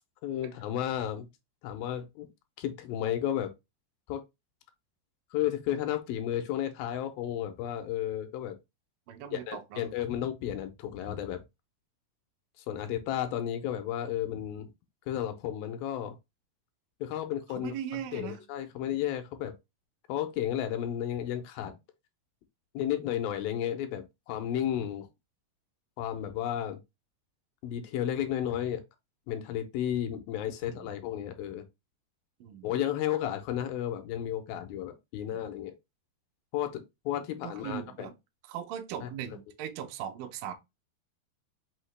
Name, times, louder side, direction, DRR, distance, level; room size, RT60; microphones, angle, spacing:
voice 1, 0.2-1.3 1.6-2.3 2.6-3.5 4.1-4.2 5.3-8.6 9.3-11.4 12.6-14.7 15.1-16.2 17.0-19.6 20.1-21.8 22.7-25.1 26.0-26.8 27.6-28.8 29.3-31.7 32.6-35.7 36.5-38.1 39.0-39.1, left 11 dB, 80° left, 2.2 m, -33 dB
voice 2, 9.1-9.8 17.5-18.4 30.6-30.9 32.4-32.7 37.4-38.1 38.5-40.5, right 10 dB, 80° right, 2.0 m, -39 dB
5.6 x 2.8 x 3.2 m
omnidirectional pair, 4.4 m